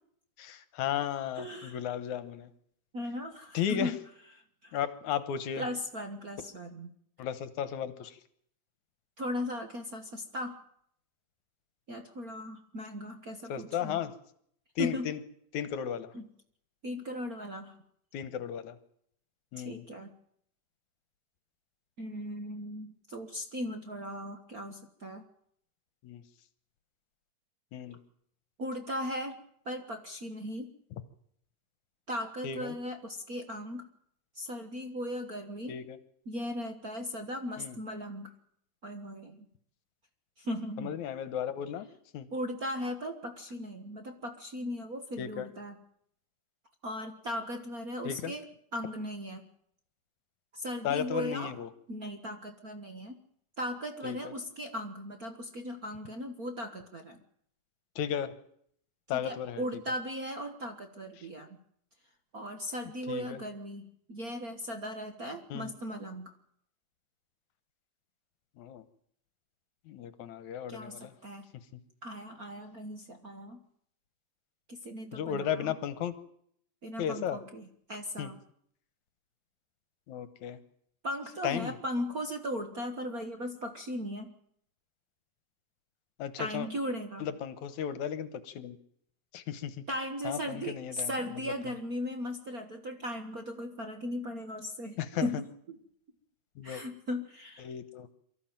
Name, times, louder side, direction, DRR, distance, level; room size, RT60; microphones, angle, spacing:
voice 1, 0.4-2.5 3.5-3.9 4.7-5.6 7.2-8.2 13.5-14.1 14.8-15.2 15.5-16.1 18.1-18.8 19.5-19.8 26.0-26.2 27.7-28.0 32.4-32.7 35.7-36.0 37.6-37.8 40.8-41.9 42.1-42.3 45.2-45.5 48.0-48.3 50.8-51.7 54.0-54.3 58.0-58.3 59.1-59.6 63.1-63.4 65.5-65.7 68.6-68.8 69.9-71.1 71.7-71.8 75.1-76.1 77.0-77.4 78.2-78.3 80.1-80.6 81.4-81.8 86.2-86.7 87.2-88.8 89.3-89.8 90.2-91.7 95.0-95.3 96.6-96.8 97.6-98.1, left 9 dB, 70° left, 14 dB, 2.3 m, -35 dB
voice 2, 1.3-1.8 2.9-4.0 4.3-4.8 5.6-6.9 9.2-10.6 11.9-14.0 14.8-15.1 16.1-16.2 16.8-17.8 19.6-20.1 22.0-25.2 28.6-29.4 29.6-30.7 32.1-33.9 34.3-35.8 36.2-38.3 38.8-39.5 40.4-40.9 42.3-45.8 46.8-48.4 48.7-49.4 50.5-51.5 51.9-53.2 53.6-57.2 59.1-61.5 62.3-66.3 70.7-71.5 72.0-73.6 74.7-75.7 76.8-78.4 81.0-84.3 86.4-87.3 89.9-95.8 96.6-97.7, equal, 55° right, 6 dB, 1.0 m, -37 dB
23.5 x 14.5 x 9.0 m, 0.69 s
omnidirectional pair, 3.9 m